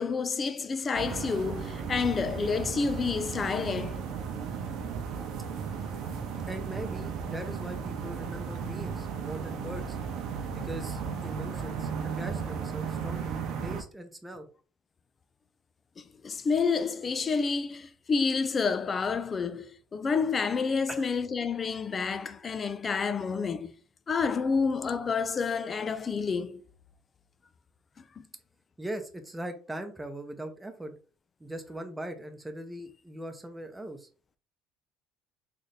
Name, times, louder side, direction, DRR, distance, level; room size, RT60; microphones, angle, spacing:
voice 1, 0.0-4.1 16.0-23.7 24.1-26.6 28.2-28.3, left 5 dB, 30° left, 0.4 m, -29 dB
sound 1, 0.9-13.8, right 6 dB, 60° right, 0.8 m, -35 dB
voice 2, 6.5-10.0 10.5-11.9 12.2-14.5 20.9-21.1 28.8-31.0 31.4-34.1, right 1 dB, 10° right, 0.7 m, -40 dB
3.3 x 2.6 x 4.0 m
cardioid pair, 125°, 0 cm